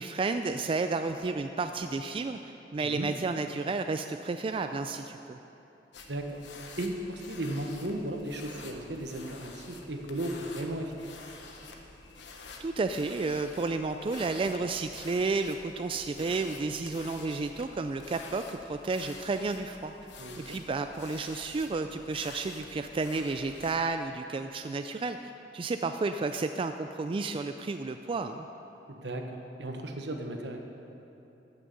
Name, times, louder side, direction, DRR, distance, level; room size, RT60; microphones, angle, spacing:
voice 1, 0.0-5.4 12.6-19.9 20.4-28.5, right 3 dB, 30° right, 7 dB, 0.3 m, -32 dB
sound 1, 5.9-23.8, left 3 dB, 90° left, 1.1 m, -48 dB
voice 2, 6.1-6.4 6.8-10.9 20.2-20.6 28.9-30.6, right 1 dB, 75° right, 4 dB, 1.2 m, -35 dB
15.0 x 6.3 x 6.8 m, 3.0 s
head